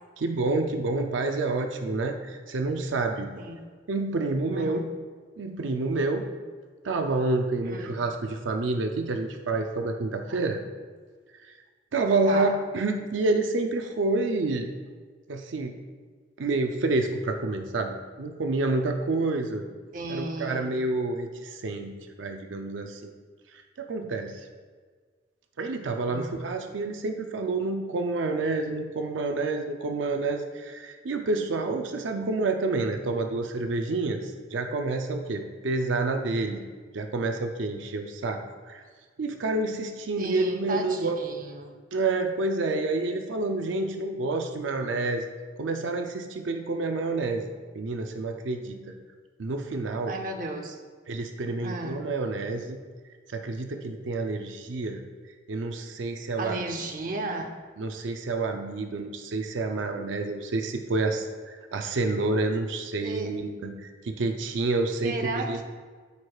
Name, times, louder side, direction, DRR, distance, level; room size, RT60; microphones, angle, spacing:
voice 1, 0.2-3.3 3.9-4.8 5.4-6.3 6.8-10.6 11.4-11.5 11.9-14.7 15.3-15.8 16.4-19.7 20.1-23.1 23.5-24.5 25.6-36.6 36.9-38.8 39.2-41.2 41.9-45.3 45.6-47.4 47.7-48.8 49.4-50.2 51.1-52.8 53.3-55.0 55.5-56.6 57.8-65.6, right 3 dB, 85° right, 5 dB, 0.5 m, -28 dB
voice 2, 3.4-3.7 4.5-4.9 7.6-8.0 12.3-12.5 19.9-20.7 26.1-26.4 40.2-41.7 50.1-50.8 51.6-52.0 56.4-57.5 63.0-63.3 65.0-65.6, right 2 dB, 45° right, 4 dB, 0.7 m, -34 dB
13.0 x 4.8 x 2.3 m, 1.5 s
head